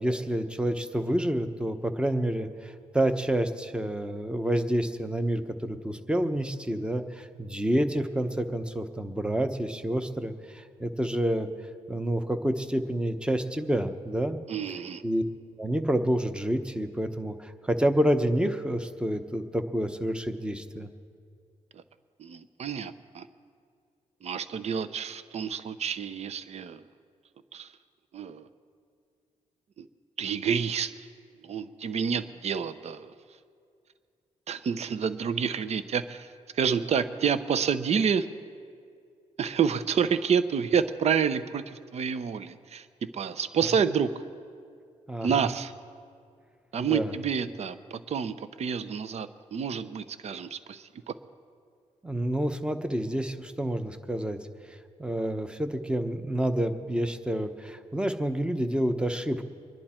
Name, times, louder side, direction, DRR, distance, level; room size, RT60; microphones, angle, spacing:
voice 1, 0.0-11.5 11.9-14.4 15.0-15.2 15.6-20.9 43.6-43.7 45.1-45.5 46.8-47.1 52.0-54.4 54.7-59.4, right 1 dB, 10° right, 9 dB, 1.0 m, -28 dB
voice 2, 14.5-15.0 21.7-21.8 22.2-23.3 24.2-26.8 27.5-27.7 28.1-28.5 29.8-29.9 30.2-30.9 31.4-33.1 34.5-36.3 36.5-38.3 39.4-42.9 43.1-44.1 45.2-45.7 46.7-51.1, right 7 dB, 60° right, 13 dB, 0.7 m, -29 dB
24.5 x 11.0 x 4.4 m, 2.3 s
cardioid pair, 85°, 12 cm